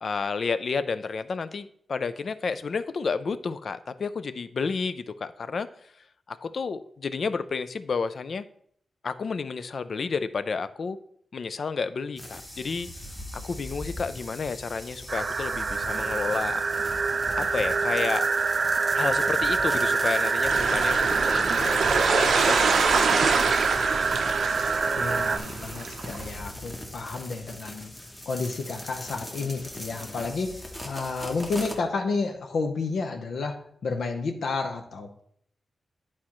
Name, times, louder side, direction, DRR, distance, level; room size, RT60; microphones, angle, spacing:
voice 1, 0.0-5.7 6.3-8.5 9.0-11.0 11.3-12.9 13.4-16.6 17.4-18.2 18.9-23.2, left 5 dB, 50° left, 12 dB, 0.4 m, -31 dB
sound 1, 12.2-31.8, left 1 dB, 10° left, 0.9 m, -40 dB
sound 2, 15.1-25.4, right 4 dB, 40° right, 0.3 m, -26 dB
Waves on a sand bar, 20.5-26.2, right 5 dB, 85° right, 0.6 m, -26 dB
voice 2, 25.0-27.9 28.3-35.2, left 4 dB, 75° left, 3 dB, 0.7 m, -31 dB
10.5 x 4.3 x 3.0 m, 0.66 s
wide cardioid pair, 160°, 0 cm